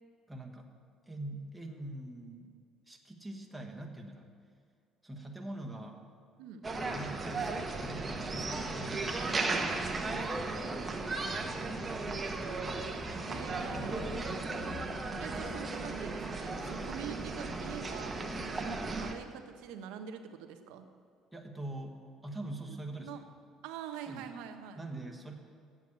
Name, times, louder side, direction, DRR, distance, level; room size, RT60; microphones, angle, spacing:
voice 1, 0.3-0.7 1.1-2.5 2.8-4.3 5.0-6.0 6.9-9.9 10.3-12.8 13.6-14.4 21.3-23.2 24.1-24.3 24.7-25.3, right 1 dB, 5° right, 1 dB, 1.4 m, -44 dB
sound 1, 6.6-19.1, right 3 dB, 25° right, 1.1 m, -36 dB
voice 2, 13.3-14.4 15.2-18.2 18.9-20.9 23.0-23.2 23.6-24.8, right 8 dB, 85° right, 8 dB, 0.9 m, -44 dB
8.2 x 7.7 x 8.6 m, 2.2 s
cardioid pair, 100°, 0 cm